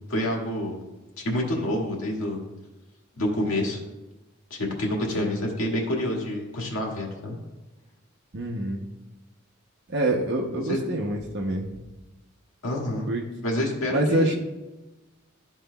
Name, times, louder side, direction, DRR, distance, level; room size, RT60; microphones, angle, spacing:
voice 1, 0.1-0.8 1.2-2.4 3.2-3.8 4.5-7.3 10.6-10.8 12.6-13.1 13.4-14.4, left 1 dB, 75° left, -2 dB, 1.8 m, -27 dB
voice 2, 8.3-8.8 9.9-11.7 13.1-13.2 13.9-14.4, right 1 dB, 55° right, -1 dB, 0.7 m, -26 dB
13.0 x 4.5 x 2.2 m, 1.1 s
head